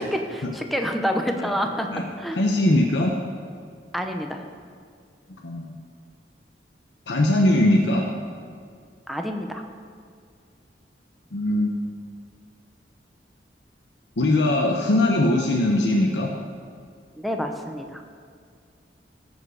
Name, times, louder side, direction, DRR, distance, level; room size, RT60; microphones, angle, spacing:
voice 1, 0.0-1.9 2.2-2.4 3.9-4.4 9.1-9.6 17.2-18.0, equal, ahead, 3 dB, 0.8 m, -27 dB
voice 2, 2.3-3.2 5.4-5.7 7.1-8.1 11.3-11.8 14.2-16.3, left 1 dB, 80° left, 1 dB, 0.9 m, -21 dB
16.0 x 5.5 x 6.3 m, 2.2 s
head